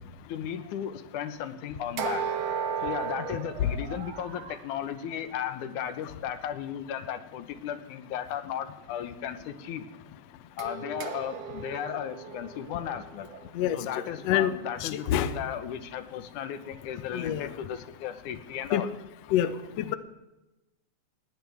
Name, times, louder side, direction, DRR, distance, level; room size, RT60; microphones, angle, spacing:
voice 1, 0.3-2.2 2.8-9.8 10.6-13.3 13.7-18.9, left 9 dB, 90° left, 10 dB, 2.5 m, -35 dB
sound 1, 2.0-4.7 10.6-14.6, right 7 dB, 60° right, 2.0 m, -36 dB
voice 2, 13.5-15.4 17.1-17.6 18.7-18.9 19.3-20.0, left 10 dB, 70° left, 12 dB, 1.8 m, -27 dB
20.0 x 17.5 x 3.5 m, 1.0 s
omnidirectional pair, 3.5 m